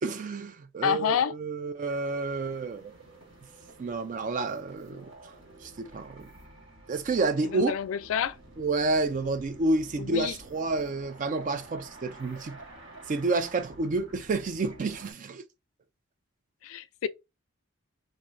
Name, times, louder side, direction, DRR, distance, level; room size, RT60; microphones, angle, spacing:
voice 1, 0.0-3.0 3.8-5.1 5.6-6.3 6.9-7.7 8.6-12.6 13.1-15.4, right 3 dB, 40° right, 0.3 m, -29 dB
voice 2, 0.8-1.4 7.5-8.4 10.0-10.3 16.6-17.1, left 8 dB, 85° left, 0.3 m, -28 dB
sound 1, 1.9-15.1, right 1 dB, 70° right, 1.8 m, -50 dB
3.0 x 2.6 x 2.5 m
head